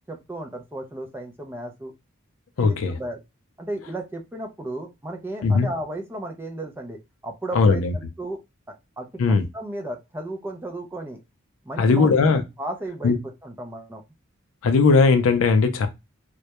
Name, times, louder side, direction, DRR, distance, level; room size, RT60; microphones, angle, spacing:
voice 1, 0.1-1.9 2.6-3.2 3.6-8.4 8.7-11.2 11.6-12.1 12.6-13.2 13.4-14.0, right 1 dB, 10° right, 0.4 m, -34 dB
voice 2, 2.6-3.0 5.4-5.7 7.5-7.9 9.2-9.5 11.8-12.4 13.0-13.2 14.6-15.9, left 4 dB, 70° left, 0.4 m, -18 dB
2.2 x 2.0 x 2.8 m
head